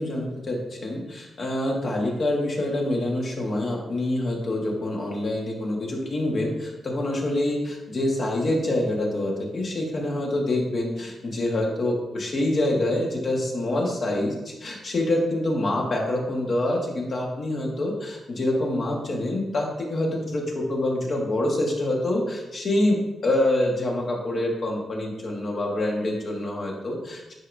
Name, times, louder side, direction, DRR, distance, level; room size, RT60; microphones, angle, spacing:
voice 1, 0.0-27.3, left 1 dB, 40° left, -1 dB, 1.5 m, -26 dB
9.6 x 4.7 x 2.7 m, 1.0 s
wide cardioid pair, 135°, 0 cm